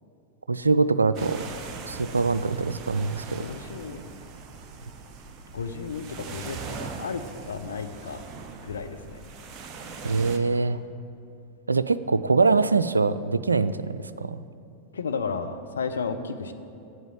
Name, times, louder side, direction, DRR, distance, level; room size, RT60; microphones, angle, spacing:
voice 1, 0.5-1.4 1.9-3.5 10.0-10.8 11.7-14.4, right 4 dB, 80° right, 14 dB, 0.3 m, -23 dB
sound 1, 1.1-10.4, right 5 dB, 30° right, 0.9 m, -40 dB
voice 2, 3.4-4.0 5.5-8.2 8.6-9.2 14.9-16.5, left 5 dB, 70° left, 7 dB, 0.6 m, -33 dB
8.0 x 7.9 x 8.8 m, 2.6 s
figure-of-eight pair, 90°, 0 cm